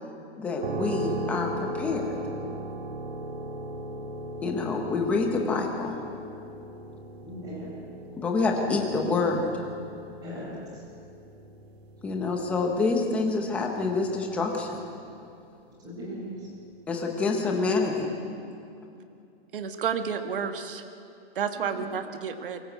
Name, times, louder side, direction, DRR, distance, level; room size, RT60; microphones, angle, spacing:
voice 1, 0.4-2.0 4.4-5.9 8.2-9.6 12.0-14.8 16.9-18.1, left 3 dB, 5° left, 2 dB, 0.8 m, -27 dB
sound 1, 0.6-15.3, right 1 dB, 80° right, 1.9 m, -38 dB
voice 2, 7.2-7.7 10.2-10.8 15.8-16.5 21.5-21.8, equal, 10° right, -4 dB, 4.6 m, -39 dB
voice 3, 19.5-20.8 21.3-22.6, right 7 dB, 60° right, 7 dB, 1.6 m, -30 dB
23.0 x 14.0 x 8.1 m, 2.6 s
hypercardioid pair, 180°, 31 cm